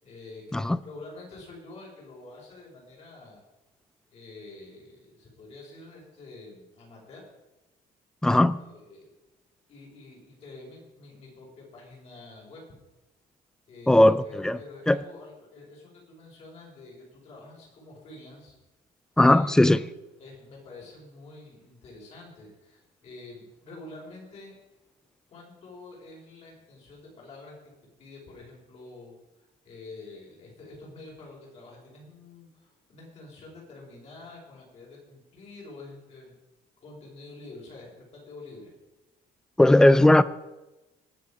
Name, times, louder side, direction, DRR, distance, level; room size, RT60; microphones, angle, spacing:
voice 1, 0.0-3.4 4.1-7.3 8.4-9.1 9.7-12.6 13.7-18.5 19.2-19.6 20.2-24.5 25.3-27.5 28.0-36.3 36.8-38.7, left 2 dB, 40° left, 5.1 m, -47 dB
voice 2, 8.2-8.6 13.9-14.6 14.9-15.0 19.2-19.8 39.6-40.2, left 1 dB, 5° left, 0.3 m, -18 dB
19.5 x 6.8 x 5.0 m
cardioid pair, 170°, 16 cm